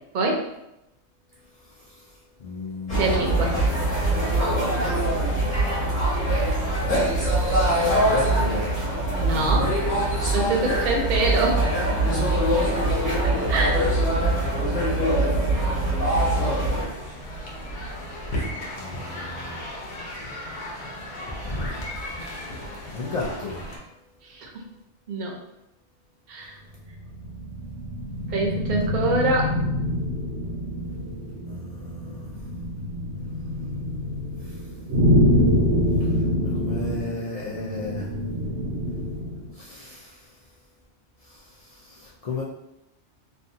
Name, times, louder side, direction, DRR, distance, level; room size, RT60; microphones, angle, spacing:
voice 1, 0.1-0.4 3.0-3.6 3.9-4.0 9.2-9.7 10.3-11.7 12.3-12.4 13.2-14.1 24.2-24.5 25.1-25.3 26.3-26.6 28.3-29.5, right 2 dB, 55° right, 0 dB, 0.6 m, -25 dB
voice 2, 1.6-3.4 6.7-8.8 12.5-12.8 15.4-15.8 18.8-19.7 21.4-21.7 22.9-23.6 31.5-32.3 34.4-34.7 36.0-38.1 39.5-40.3 41.2-42.4, left 3 dB, 60° left, -7 dB, 0.3 m, -35 dB
sound 1, 2.9-16.8, right 1 dB, 45° left, 1.0 m, -23 dB
sound 2, 16.2-23.8, left 1 dB, 80° left, 1.0 m, -35 dB
sound 3, 26.8-39.5, left 1 dB, 80° right, 0.9 m, -26 dB
2.6 x 2.3 x 2.6 m, 0.88 s
omnidirectional pair, 1.2 m